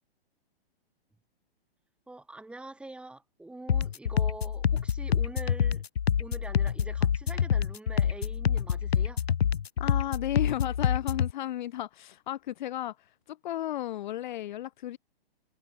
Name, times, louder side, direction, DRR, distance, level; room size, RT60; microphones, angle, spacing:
voice 1, 2.1-5.8 6.2-9.2, right 2 dB, 5° right, 4.3 m, -44 dB
sound 1, 3.7-11.3, left 8 dB, 85° left, 1.5 m, -27 dB
voice 2, 9.8-13.0 13.3-15.0, left 13 dB, 50° left, 2.1 m, -34 dB
hypercardioid pair, 150°, 30 cm